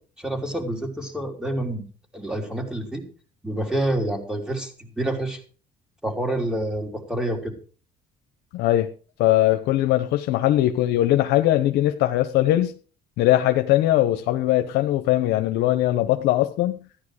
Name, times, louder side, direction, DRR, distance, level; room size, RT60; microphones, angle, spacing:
voice 1, 0.2-1.8 2.1-3.0 3.4-5.4 6.0-7.5, right 1 dB, 5° right, 3.7 m, -27 dB
voice 2, 8.5-8.9 9.2-12.8 13.2-16.8, left 14 dB, 90° left, 0.9 m, -20 dB
14.5 x 10.5 x 4.9 m
cardioid pair, 110°, 17 cm